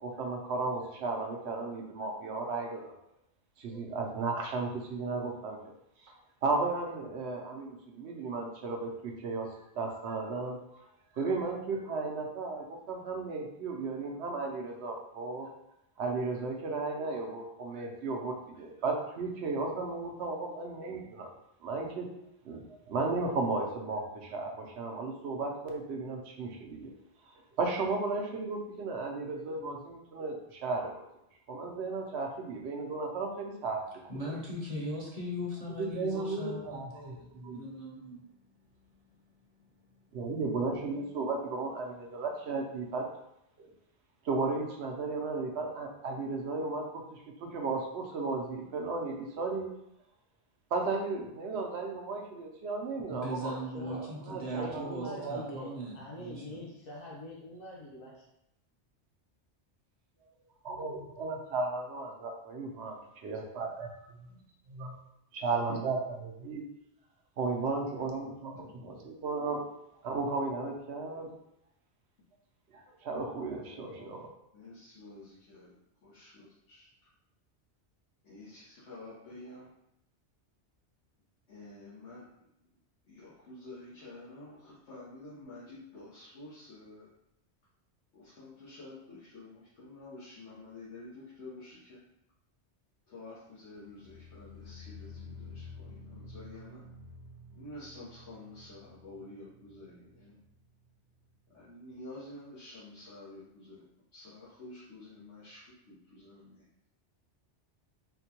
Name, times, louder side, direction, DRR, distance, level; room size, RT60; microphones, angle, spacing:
voice 1, 0.0-2.9 3.6-5.6 6.0-10.6 11.1-15.5 16.0-21.3 21.6-22.1 22.4-26.9 27.6-31.0 31.5-33.8 34.2-34.4 35.8-37.6 40.1-43.1 43.6-43.7 44.2-49.7 50.7-53.5 53.8-54.0 54.3-55.4 60.6-63.0 63.2-63.7 64.7-64.9 65.3-66.6 67.4-69.6 70.0-71.3 72.7-74.3, right 3 dB, 70° right, 1 dB, 0.9 m, -35 dB
voice 2, 34.1-38.2 38.8-39.2 53.1-56.4, equal, 40° right, -3 dB, 0.7 m, -39 dB
voice 3, 53.5-58.3, left 1 dB, 55° left, -3 dB, 1.1 m, -44 dB
voice 4, 66.1-66.6 73.6-74.2 74.5-75.7 76.0-76.9 78.2-79.7 81.5-82.5 83.0-87.1 88.1-92.0 93.1-96.8 97.5-100.4 101.5-103.8 104.1-106.7, left 2 dB, 90° left, -10 dB, 1.3 m, -49 dB
sound 1, 93.8-100.9 101.2-101.6 102.0-102.1, left 3 dB, 5° left, 0.6 m, -50 dB
4.2 x 2.2 x 2.8 m, 0.81 s
omnidirectional pair, 1.2 m